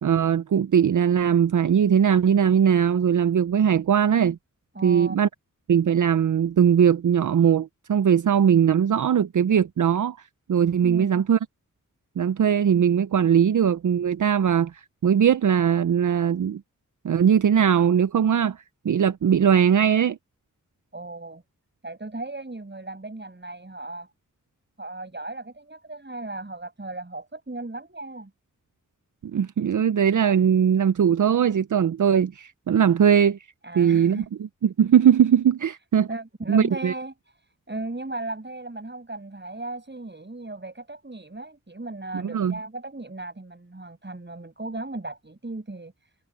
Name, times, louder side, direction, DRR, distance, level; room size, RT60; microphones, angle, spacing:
voice 1, 0.0-4.4 4.8-5.3 5.7-10.2 10.5-11.4 12.2-16.6 17.0-20.2 29.3-33.4 33.8-34.2 34.6-36.1 36.5-36.9 42.1-42.5, right 8 dB, 70° right, 0.5 m, -20 dB
voice 2, 4.7-5.2 10.8-11.2 20.9-21.4 21.8-24.1 24.8-28.3 33.6-34.3 36.1-37.1 37.7-46.1, right 2 dB, 35° right, 6.6 m, -36 dB
wide cardioid pair, 75°, 32 cm